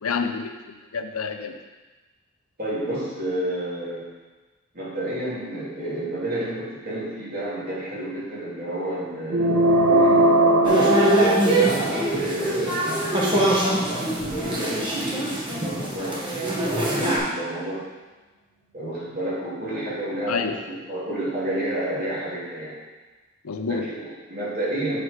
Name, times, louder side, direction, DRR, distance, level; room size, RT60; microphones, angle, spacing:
voice 1, 0.0-1.6 20.3-20.6 23.4-23.9, left 5 dB, 85° left, 6 dB, 0.7 m, -28 dB
voice 2, 2.6-4.1 4.7-10.9 11.5-13.5 14.0-17.9 18.7-22.7 23.7-25.0, right 1 dB, 45° right, -7 dB, 2.7 m, -31 dB
sound 1, 9.3-12.0, right 1 dB, 90° right, 1.2 m, -19 dB
sound 2, 10.6-17.2, right 1 dB, 25° right, 1.4 m, -23 dB
8.2 x 4.6 x 4.9 m, 1.2 s
head